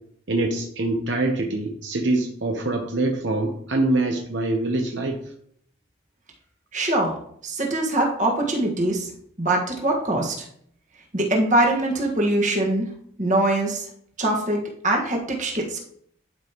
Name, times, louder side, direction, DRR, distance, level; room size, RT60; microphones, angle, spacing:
voice 1, 0.3-5.2, right 2 dB, 65° right, 2 dB, 0.9 m, -24 dB
voice 2, 6.7-7.2 7.4-9.1 9.4-10.4 11.1-12.9 13.2-13.9 14.2-15.8, right 1 dB, 40° right, 0 dB, 1.6 m, -23 dB
11.5 x 5.3 x 3.0 m, 0.67 s
head